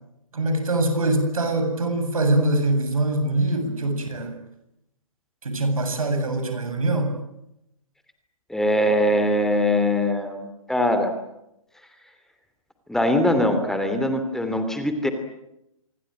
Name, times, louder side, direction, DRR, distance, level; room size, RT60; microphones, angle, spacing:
voice 1, 0.3-4.4 5.4-7.2, right 2 dB, 75° right, 7 dB, 7.9 m, -23 dB
voice 2, 8.5-11.1 12.9-15.1, left 1 dB, ahead, 7 dB, 3.0 m, -22 dB
26.5 x 23.5 x 9.1 m, 0.84 s
figure-of-eight pair, 125°, 18 cm